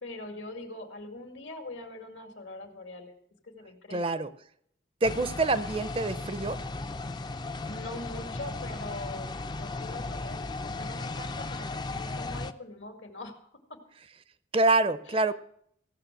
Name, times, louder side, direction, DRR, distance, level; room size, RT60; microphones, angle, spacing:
voice 1, 0.0-3.1 3.4-4.2 7.6-9.3 9.6-13.4 15.1-15.3, left 2 dB, 80° left, 5 dB, 2.2 m, -42 dB
voice 2, 3.9-4.3 5.0-6.6 14.5-15.3, right 2 dB, 30° right, 14 dB, 0.5 m, -26 dB
sound 1, 5.0-12.5, left 3 dB, 20° left, 0.4 m, -36 dB
15.5 x 6.7 x 7.8 m, 0.68 s
head